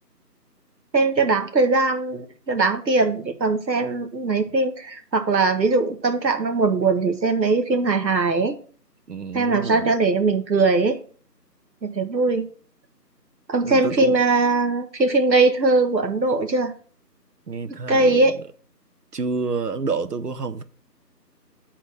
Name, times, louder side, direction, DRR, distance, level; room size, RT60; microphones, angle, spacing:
voice 1, 0.9-8.5 9.3-11.0 11.8-12.5 13.5-16.7 17.9-18.4, right 3 dB, 90° right, 1.3 m, -20 dB
voice 2, 9.1-9.9 13.7-14.1 17.5-18.2 19.1-20.6, right 4 dB, 70° right, 0.8 m, -28 dB
8.1 x 4.1 x 6.1 m
figure-of-eight pair, 175°, 50 cm